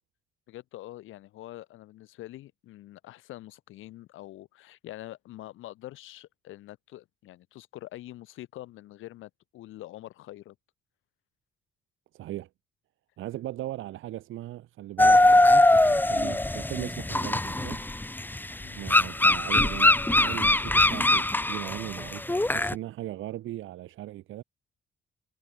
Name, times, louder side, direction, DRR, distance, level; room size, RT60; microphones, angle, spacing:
voice 1, 0.5-10.5 18.6-18.8, left 15 dB, 90° left, 3.4 m, -45 dB
voice 2, 12.1-12.5 13.2-17.8 18.8-24.4, right 14 dB, 85° right, 7.2 m, -38 dB
sound 1, 15.0-22.7, left 1 dB, 10° left, 1.4 m, -22 dB
cardioid pair, 90°, 20 cm